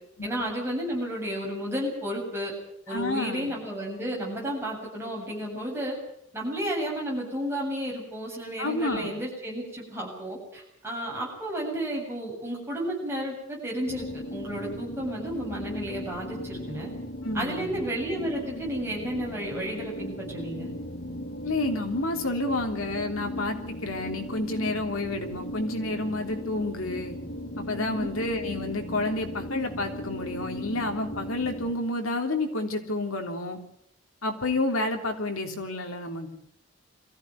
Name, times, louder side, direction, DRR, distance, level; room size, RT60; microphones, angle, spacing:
voice 1, 0.2-2.5 2.9-6.0 6.3-16.9 17.3-20.7 27.7-28.1, equal, 10° right, -3 dB, 7.6 m, -32 dB
voice 2, 2.9-3.5 8.6-9.1 17.2-17.7 21.4-27.2 27.6-33.6 34.2-36.4, left 2 dB, 80° left, 4 dB, 3.3 m, -30 dB
sound 1, 13.9-31.7, equal, 60° left, 3.0 m, -37 dB
23.0 x 15.0 x 9.5 m, 0.75 s
head